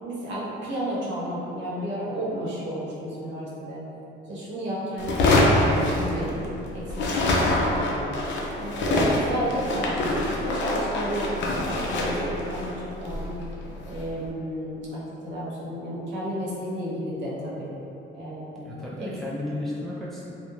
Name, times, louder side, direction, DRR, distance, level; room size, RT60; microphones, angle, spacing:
voice 1, 0.0-3.8 4.3-6.4 6.7-8.1 8.5-13.4 13.9-17.7 18.1-18.7 19.0-19.1, equal, 65° right, -7 dB, 0.8 m, -32 dB
sound 1, 5.0-6.6 6.9-14.1, left 1 dB, 70° left, 0.5 m, -25 dB
voice 2, 18.6-20.3, left 1 dB, ahead, -8 dB, 0.5 m, -33 dB
2.4 x 2.0 x 3.0 m, 2.8 s
cardioid pair, 90°, 20 cm